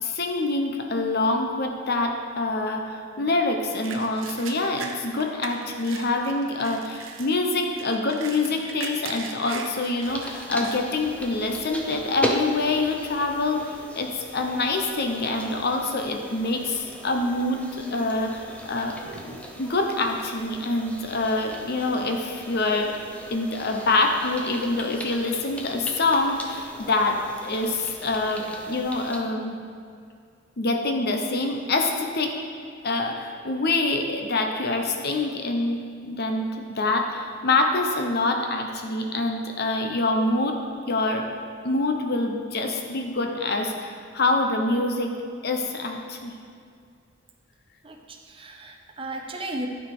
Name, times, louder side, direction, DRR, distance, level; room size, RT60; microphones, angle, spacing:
voice 1, 0.0-19.0 19.2-23.0 23.3-29.6 30.6-32.3 32.8-40.6 40.9-41.3 41.6-45.1 45.4-46.3, left 2 dB, 55° left, 3 dB, 0.9 m, -26 dB
sound 1, 3.8-10.9 11.4-11.5 12.0-12.4 13.1-13.3 13.6-14.8 15.1-15.6 16.0-16.1 16.9-17.5 17.9-21.0, right 5 dB, 80° right, 0.7 m, -41 dB
sound 2, 10.0-29.2, equal, 5° left, 0.7 m, -38 dB
voice 2, 47.8-49.7, right 1 dB, 30° right, 3 dB, 0.8 m, -35 dB
12.0 x 4.9 x 4.9 m, 2.3 s
head